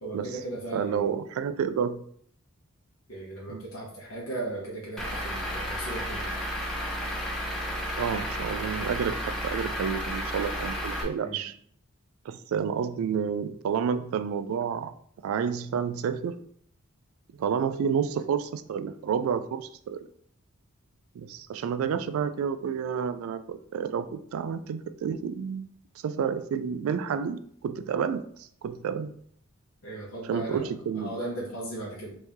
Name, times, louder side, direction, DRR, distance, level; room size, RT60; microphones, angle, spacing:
voice 1, 0.0-1.1 3.1-6.3 11.2-11.4 29.8-30.6 30.9-32.2, right 2 dB, 80° left, -5 dB, 1.0 m, -37 dB
voice 2, 0.7-2.0 3.5-3.6 8.0-9.2 9.4-11.5 12.3-14.9 15.2-16.4 17.4-20.0 21.2-25.7 26.0-29.1 30.3-31.1, right 7 dB, 80° right, 12 dB, 0.3 m, -30 dB
Truck / Idling, 5.0-11.0, equal, 5° left, 0.6 m, -32 dB
3.0 x 2.7 x 3.5 m, 0.62 s
head